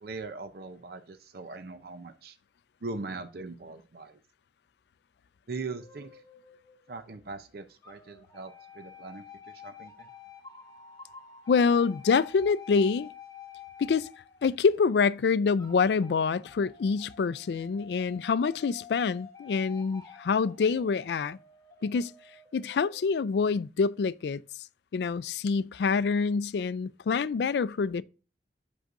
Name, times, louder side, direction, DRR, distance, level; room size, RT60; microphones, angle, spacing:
voice 1, 0.0-2.4 2.8-4.2 5.5-6.1 6.9-10.1, right 3 dB, 60° right, 0.6 m, -40 dB
sound 1, 5.8-7.3 7.8-14.9 15.6-23.1, left 6 dB, 25° left, 1.4 m, -50 dB
voice 2, 11.5-13.1 13.8-14.1 14.4-21.4 21.8-22.1 22.5-24.4 24.9-28.0, left 5 dB, 70° left, 0.3 m, -26 dB
8.0 x 6.3 x 2.5 m
head